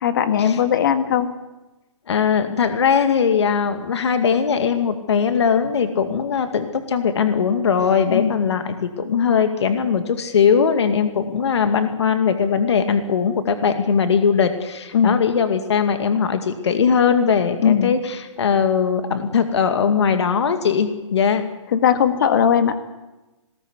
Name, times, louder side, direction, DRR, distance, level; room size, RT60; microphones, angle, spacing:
voice 1, 0.0-1.3 8.1-8.4 14.9-15.2 17.6-17.9 21.7-22.7, left 8 dB, 40° left, 9 dB, 1.9 m, -18 dB
voice 2, 2.1-21.4, left 6 dB, 55° left, 7 dB, 2.2 m, -20 dB
22.0 x 19.0 x 8.2 m, 1.1 s
hypercardioid pair, 170°, 17 cm